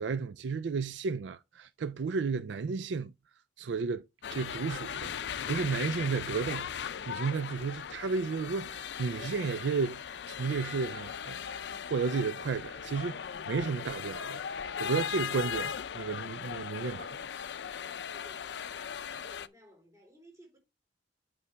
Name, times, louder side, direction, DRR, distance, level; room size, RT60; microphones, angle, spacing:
voice 1, 0.0-3.1 3.6-4.0 4.3-11.6 11.9-17.2, right 5 dB, 80° right, 0.4 m, -33 dB
sound 1, 4.2-19.5, left 7 dB, 70° left, 0.4 m, -38 dB
voice 2, 17.9-18.9 19.2-20.6, left 1 dB, 15° right, 3.8 m, -57 dB
8.4 x 5.4 x 3.4 m
head